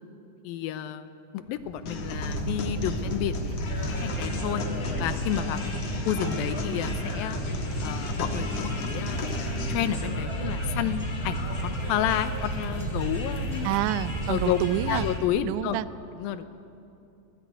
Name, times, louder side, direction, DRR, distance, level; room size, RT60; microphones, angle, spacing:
voice 1, 0.4-1.1 1.3-4.6 5.0-5.6 6.1-7.4 7.8-9.2 9.7-13.7 14.3-14.6 14.9-15.8 16.2-16.5, left 11 dB, 85° left, 12 dB, 2.6 m, -30 dB
sound 1, 1.5-15.2, right 1 dB, 55° right, 4.5 m, -32 dB
sound 2, 1.9-9.8, left 3 dB, 55° left, 2.6 m, -37 dB
sound 3, 3.6-15.2, left 2 dB, 30° left, 1.9 m, -40 dB
voice 2, 13.6-15.1 15.4-15.9, right 14 dB, 80° right, 14 dB, 1.8 m, -28 dB
23.0 x 15.0 x 9.2 m, 2.7 s
omnidirectional pair, 4.1 m